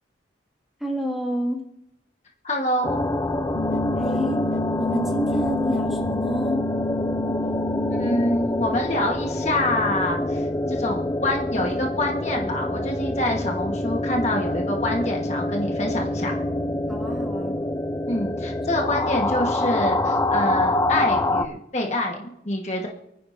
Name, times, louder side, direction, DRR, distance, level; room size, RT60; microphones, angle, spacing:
voice 1, 0.8-1.6 3.9-4.4 4.8-6.6 16.9-17.6, equal, ahead, 0 dB, 2.0 m, -28 dB
voice 2, 2.4-3.0 7.9-16.3 18.1-22.9, left 1 dB, 35° left, 1 dB, 1.3 m, -26 dB
sound 1, 2.8-21.5, left 1 dB, 15° left, 0.4 m, -26 dB
sound 2, 3.6-8.5, left 1 dB, 70° left, 0.5 m, -30 dB
28.5 x 9.9 x 2.7 m, 0.84 s
head